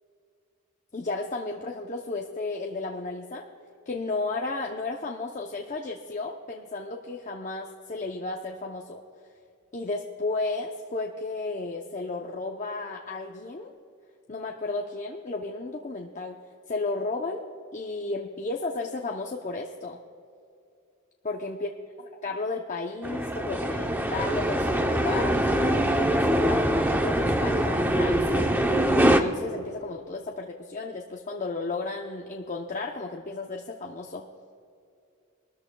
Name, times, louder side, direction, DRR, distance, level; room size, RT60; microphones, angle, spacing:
voice 1, 0.9-3.5 3.9-9.0 9.7-13.7 14.3-16.4 16.7-17.4 17.7-20.0 21.2-21.7 22.2-28.5 28.8-34.2, left 3 dB, 35° left, 1 dB, 0.6 m, -33 dB
sound 1, 23.0-29.2, right 1 dB, 10° right, 0.6 m, -23 dB
23.5 x 13.5 x 2.3 m, 2.5 s
head